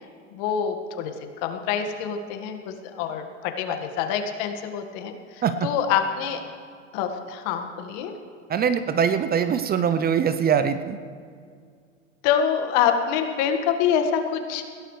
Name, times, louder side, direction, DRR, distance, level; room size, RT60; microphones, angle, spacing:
voice 1, 0.3-1.1 1.4-6.4 6.9-8.2 12.2-14.6, left 8 dB, 55° left, 6 dB, 1.8 m, -26 dB
voice 2, 8.5-11.0, right 7 dB, 25° right, 11 dB, 0.7 m, -22 dB
21.5 x 16.5 x 3.3 m, 2.1 s
hypercardioid pair, 95°, 36 cm